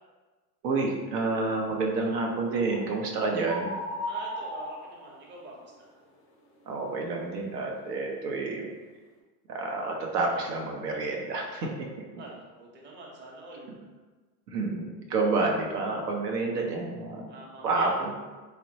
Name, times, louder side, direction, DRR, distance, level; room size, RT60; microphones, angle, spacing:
voice 1, 0.6-3.7 6.7-8.7 9.5-11.7 14.5-17.3 17.6-18.1, right 3 dB, 90° right, 1 dB, 0.6 m, -29 dB
sound 1, 2.7-3.0 3.4-5.5, equal, 30° left, 0.4 m, -36 dB
voice 2, 4.1-5.9 12.2-13.7 17.3-17.9, right 2 dB, 25° right, -2 dB, 0.6 m, -45 dB
3.1 x 2.1 x 2.6 m, 1.3 s
hypercardioid pair, 90°, 47 cm